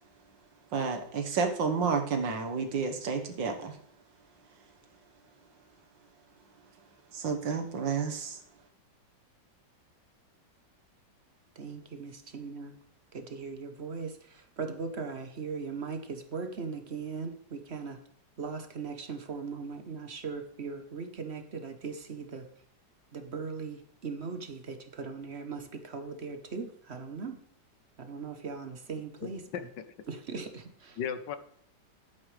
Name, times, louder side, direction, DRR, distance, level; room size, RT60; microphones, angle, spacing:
voice 1, 0.7-3.8 7.1-8.4, right 5 dB, 85° right, 6 dB, 2.0 m, -30 dB
voice 2, 11.6-12.8 13.1-18.0 18.4-22.5 23.1-27.4 28.0-29.7 30.1-31.0, right 5 dB, 45° right, 7 dB, 1.0 m, -39 dB
voice 3, 29.2-29.8 31.0-31.4, left 8 dB, 75° left, 11 dB, 1.4 m, -36 dB
11.5 x 8.8 x 3.3 m, 0.68 s
omnidirectional pair, 2.0 m